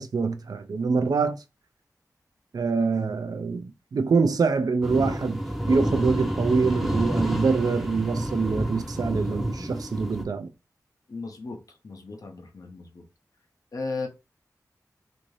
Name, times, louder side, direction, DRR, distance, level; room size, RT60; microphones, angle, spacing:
voice 1, 0.0-1.4 2.5-5.4 5.7-10.5, right 4 dB, 70° right, 0.4 m, -25 dB
sound 1, 4.8-10.2, equal, ahead, 0.6 m, -29 dB
voice 2, 11.1-13.0 13.7-14.1, left 3 dB, 60° left, 0.7 m, -36 dB
2.6 x 2.6 x 3.1 m
wide cardioid pair, 70°, 7 cm